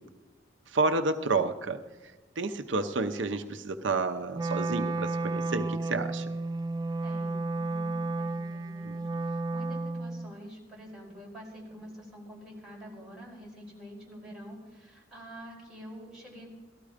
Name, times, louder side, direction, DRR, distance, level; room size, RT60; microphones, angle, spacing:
voice 1, 0.7-1.8 2.4-6.3 8.8-9.0, right 3 dB, 85° right, 7 dB, 0.8 m, -30 dB
Wind instrument woodwind instrument, 4.3-10.3, right 2 dB, 20° right, 0.4 m, -32 dB
voice 2, 7.0-16.5, equal, 5° right, -5 dB, 4.9 m, -47 dB
18.5 x 13.5 x 5.0 m, 1.2 s
head